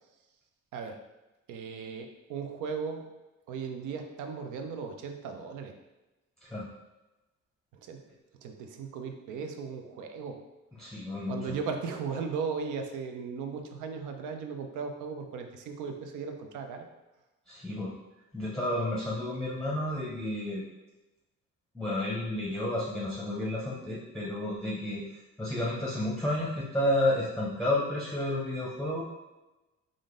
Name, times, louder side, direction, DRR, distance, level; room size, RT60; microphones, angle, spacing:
voice 1, 1.5-3.0 3.5-5.7 7.9-8.0 8.4-10.4 11.3-16.9, right 5 dB, 80° right, 5 dB, 0.6 m, -37 dB
voice 2, 10.7-11.6 17.5-17.9 18.3-20.6 21.7-29.0, left 1 dB, ahead, -6 dB, 0.7 m, -31 dB
3.6 x 2.5 x 3.7 m, 1.1 s
cardioid pair, 90°, 30 cm